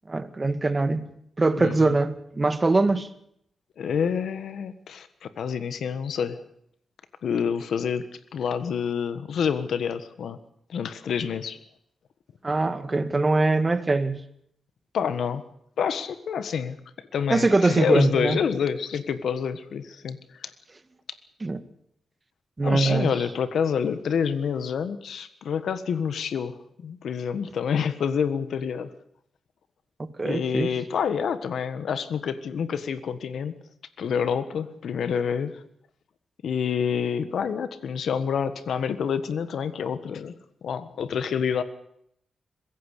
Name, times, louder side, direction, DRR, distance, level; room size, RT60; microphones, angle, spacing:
voice 1, 0.1-1.1 1.4-3.1 12.4-14.2 17.3-18.4 21.4-21.6 22.6-23.1 30.0-30.7, right 3 dB, 25° right, 1.7 m, -23 dB
voice 2, 1.6-1.9 3.8-6.4 7.2-10.4 10.7-11.6 14.9-15.4 15.8-20.5 22.6-28.9 30.2-33.6 34.0-35.6 36.4-40.3 40.6-41.6, left 7 dB, 80° left, 1.5 m, -28 dB
22.5 x 16.0 x 8.4 m
cardioid pair, 90°, 0 cm